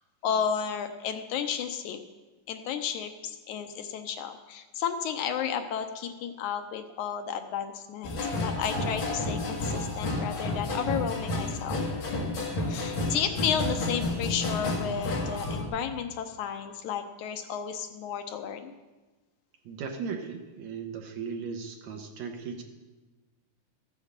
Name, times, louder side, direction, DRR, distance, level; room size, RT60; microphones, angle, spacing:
voice 1, 0.2-2.0 2.5-11.8 12.7-18.7, left 7 dB, 75° left, 7 dB, 2.0 m, -32 dB
sound 1, 8.0-15.6, left 2 dB, 45° left, 2.0 m, -31 dB
voice 2, 19.7-22.6, right 5 dB, 70° right, 3 dB, 2.0 m, -37 dB
14.5 x 7.2 x 6.6 m, 1.2 s
omnidirectional pair, 3.7 m